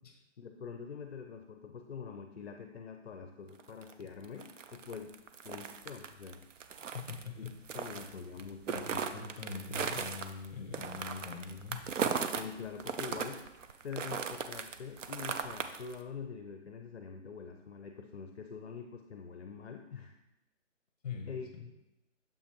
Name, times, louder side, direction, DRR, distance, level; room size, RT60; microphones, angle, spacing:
voice 1, 0.4-5.1 5.4-6.4 7.4-7.5 7.7-8.8 12.3-13.4 13.8-20.2 21.3-21.5, left 6 dB, 55° left, 4 dB, 0.6 m, -45 dB
sound 1, 3.6-12.5 12.8-16.0, right 6 dB, 75° right, 0.6 m, -38 dB
voice 2, 6.9-7.5 8.0-8.1 8.7-12.1 21.0-21.6, left 5 dB, 30° left, 2 dB, 1.2 m, -43 dB
7.1 x 5.5 x 3.0 m, 0.92 s
hypercardioid pair, 170°, 38 cm